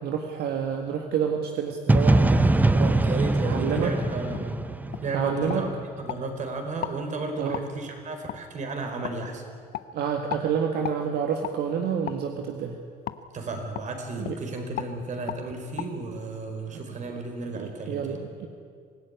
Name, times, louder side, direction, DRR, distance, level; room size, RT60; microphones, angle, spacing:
voice 1, 0.0-3.0 3.5-3.9 5.1-5.6 7.4-7.6 9.9-12.8 14.2-14.3 16.7-16.8 17.5-18.5, right 7 dB, 70° right, 3 dB, 1.9 m, -29 dB
sound 1, 1.9-5.7, right 2 dB, 10° right, 0.7 m, -22 dB
voice 2, 3.0-4.6 5.0-5.7 6.0-9.4 13.3-18.2, right 2 dB, 45° right, 5 dB, 4.7 m, -33 dB
sound 2, 4.3-4.5 4.9-5.1 5.5-6.2 6.8-7.0 7.5-7.7 8.3-8.4 9.0-9.2 9.7-9.9 10.3-10.5 10.8-11.0 11.4-11.6 12.0-12.2 13.1-13.2 13.7-13.9 14.2-14.4 14.8-14.9 15.3-15.4 15.8-15.9, left 13 dB, 70° left, 1.0 m, -34 dB
25.5 x 16.0 x 9.8 m, 2.2 s
cardioid pair, 110°, 17 cm